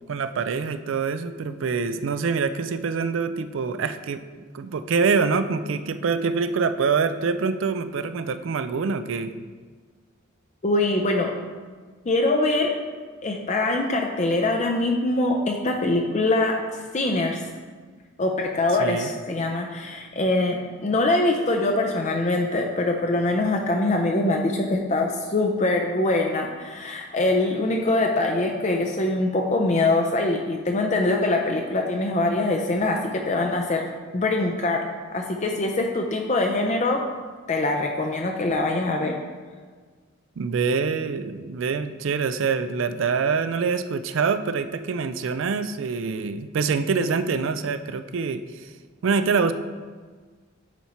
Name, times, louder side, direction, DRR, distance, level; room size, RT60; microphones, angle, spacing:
voice 1, 0.1-4.2 4.5-9.3 18.8-19.1 40.4-48.7 49.0-49.5, right 5 dB, 70° right, 11 dB, 0.4 m, -25 dB
voice 2, 10.6-11.3 12.1-12.7 13.2-16.6 16.9-17.4 18.2-33.8 34.1-34.8 35.1-37.0 37.5-39.2, left 2 dB, 35° left, 2 dB, 0.5 m, -23 dB
9.1 x 4.5 x 4.3 m, 1.5 s
head